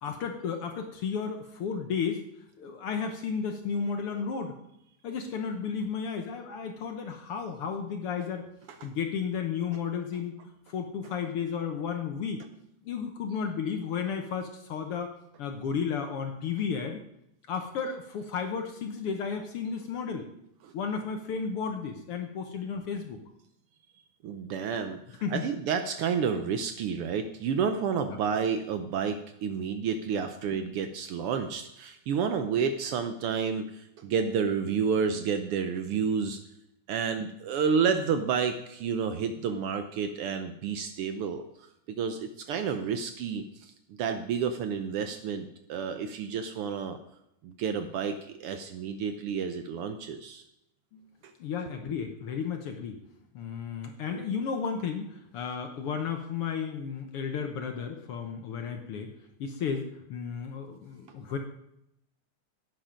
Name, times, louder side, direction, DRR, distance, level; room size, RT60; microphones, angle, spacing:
voice 1, 0.0-2.2 2.6-4.5 5.0-8.5 8.8-10.3 10.7-12.4 12.8-15.1 15.4-17.0 17.5-20.3 20.7-23.2 25.2-25.4 28.1-28.2 30.5-30.7 50.9-51.0 51.4-53.0 53.3-59.1 59.4-61.4, left 6 dB, 65° left, 5 dB, 1.5 m, -33 dB
voice 2, 24.2-25.0 25.3-36.4 36.9-41.4 41.9-43.4 44.0-47.0 47.4-50.4 54.1-54.2, right 6 dB, 90° right, 8 dB, 1.2 m, -30 dB
12.0 x 9.0 x 5.1 m, 0.80 s
omnidirectional pair, 3.6 m